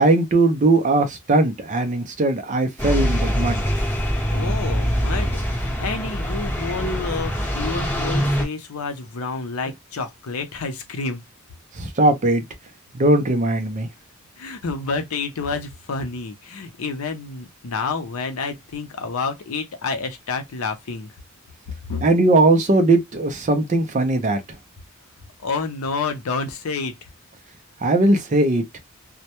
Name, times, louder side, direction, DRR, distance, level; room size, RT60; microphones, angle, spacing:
voice 1, 0.0-3.6 11.8-12.4 12.9-13.9 22.0-24.4 27.8-28.6, right 2 dB, 35° right, 0.4 m, -19 dB
sound 1, 2.8-8.4, equal, 10° left, 0.9 m, -23 dB
voice 2, 4.3-11.2 14.4-21.1 21.9-22.0 25.4-27.0, left 4 dB, 75° left, 0.6 m, -29 dB
2.1 x 2.1 x 2.8 m
head